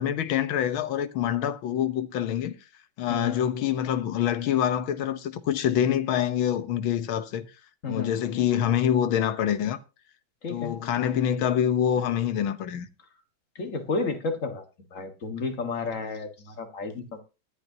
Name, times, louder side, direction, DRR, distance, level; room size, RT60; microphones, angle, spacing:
voice 1, 0.0-2.5 3.0-7.5 7.9-9.8 10.5-12.9, left 9 dB, 85° left, 1.8 m, -26 dB
voice 2, 3.1-3.4 7.8-8.1 10.4-10.8 13.6-14.6 14.9-17.2, left 4 dB, 40° left, 1.9 m, -31 dB
18.5 x 11.0 x 2.8 m
omnidirectional pair, 2.2 m